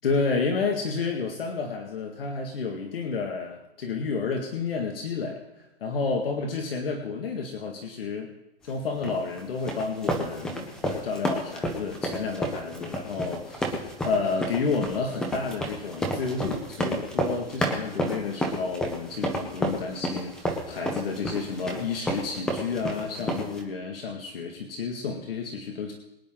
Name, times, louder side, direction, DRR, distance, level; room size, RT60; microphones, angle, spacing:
voice 1, 0.0-8.3 8.6-25.9, left 4 dB, 65° left, 2 dB, 2.1 m, -30 dB
sound 1, 9.0-23.6, equal, ahead, 0.7 m, -30 dB
23.0 x 9.8 x 3.8 m, 0.94 s
hypercardioid pair, 170°, 31 cm